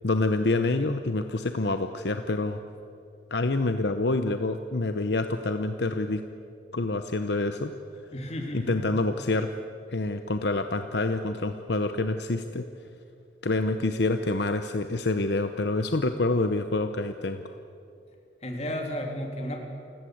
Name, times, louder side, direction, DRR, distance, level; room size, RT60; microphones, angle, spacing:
voice 1, 0.0-2.6 3.3-6.2 6.7-7.7 8.7-9.5 9.9-12.7 13.4-17.4, left 2 dB, 65° left, 8 dB, 0.9 m, -27 dB
voice 2, 8.1-8.9 18.4-19.6, equal, 35° left, 2 dB, 3.2 m, -33 dB
29.0 x 17.0 x 7.9 m, 2.6 s
head